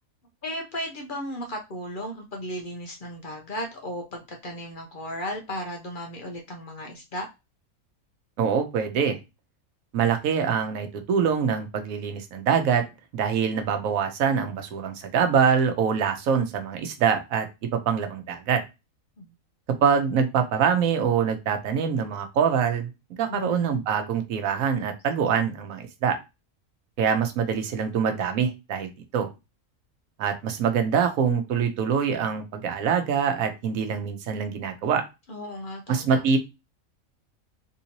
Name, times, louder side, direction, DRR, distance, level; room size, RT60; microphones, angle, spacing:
voice 1, 0.4-7.3 19.2-19.3 23.3-23.8 35.3-36.2, equal, 50° left, 2 dB, 0.7 m, -35 dB
voice 2, 8.4-9.2 9.9-12.9 13.1-18.6 19.8-22.9 23.2-26.2 27.0-29.3 30.2-35.0 35.9-36.4, right 7 dB, 85° right, 6 dB, 1.1 m, -24 dB
3.7 x 2.8 x 2.8 m, 0.25 s
omnidirectional pair, 1.4 m